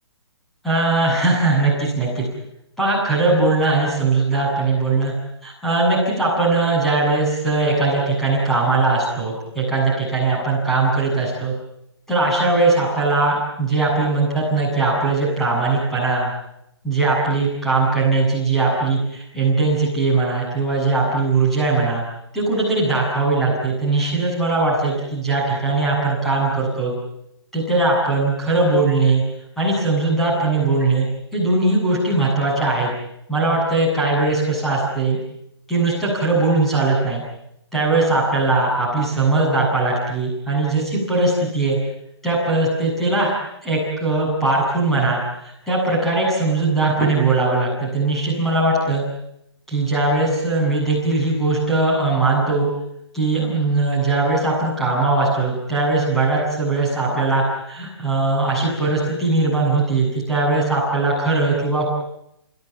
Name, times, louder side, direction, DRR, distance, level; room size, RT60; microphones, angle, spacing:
voice 1, 0.6-2.3 2.8-5.1 5.4-11.5 12.1-16.3 16.8-22.0 22.3-26.9 27.5-29.2 29.6-31.1 31.3-32.9 33.3-35.2 35.7-37.2 37.7-41.8 42.2-45.2 45.7-49.0 49.7-52.7 53.1-61.9, right 3 dB, ahead, -5 dB, 7.9 m, -20 dB
30.0 x 17.0 x 9.4 m, 0.80 s
hypercardioid pair, 160°, 15 cm